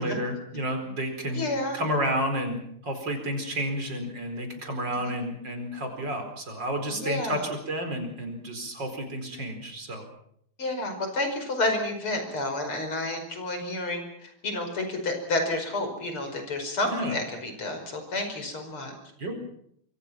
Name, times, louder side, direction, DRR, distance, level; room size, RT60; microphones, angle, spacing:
voice 1, 0.0-1.5 1.7-2.6 2.8-10.1 16.8-17.1 19.2-19.3, equal, 55° right, 5 dB, 5.2 m, -31 dB
voice 2, 1.3-1.8 5.0-5.1 6.9-7.4 10.6-18.9, left 2 dB, 90° left, 5 dB, 6.0 m, -30 dB
26.0 x 23.5 x 5.9 m, 0.68 s
omnidirectional pair, 2.3 m